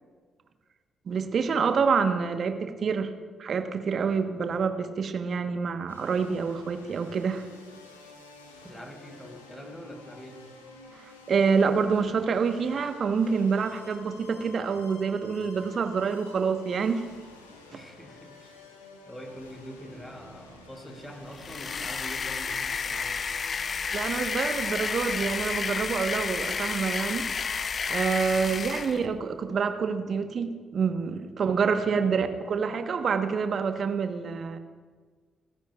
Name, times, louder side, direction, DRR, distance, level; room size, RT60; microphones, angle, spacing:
voice 1, 1.1-3.1 3.4-7.4 10.9-17.0 23.9-34.6, right 5 dB, 50° right, 8 dB, 1.2 m, -27 dB
sound 1, 5.9-24.3, left 3 dB, 85° left, 1.5 m, -50 dB
voice 2, 8.6-10.4 17.7-18.5 19.0-23.2 31.7-32.2, equal, 10° left, 3 dB, 4.3 m, -44 dB
sound 2, 21.3-29.1, left 5 dB, 45° left, 0.5 m, -31 dB
27.5 x 14.0 x 2.4 m, 1.5 s
figure-of-eight pair, 40°, 0 cm